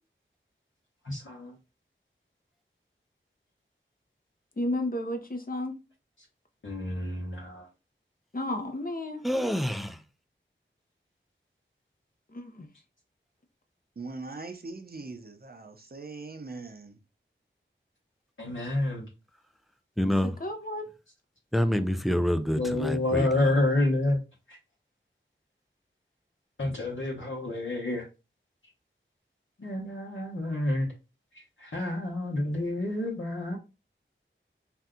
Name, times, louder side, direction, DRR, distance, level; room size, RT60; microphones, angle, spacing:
voice 1, 1.0-1.5 6.6-7.7 18.4-19.0 22.6-24.2 24.5-24.6 26.6-28.0 29.6-30.9 31.6-33.6, left 2 dB, 70° left, 1.0 m, -29 dB
voice 2, 4.6-5.7 8.3-9.2 12.3-12.7 20.2-20.9, left 1 dB, 45° left, 0.7 m, -32 dB
voice 3, 9.2-10.0 20.0-20.3 21.5-23.5, equal, ahead, 0.4 m, -27 dB
voice 4, 14.0-16.9, right 3 dB, 50° right, 0.6 m, -41 dB
2.7 x 2.2 x 3.6 m
wide cardioid pair, 45°, 21 cm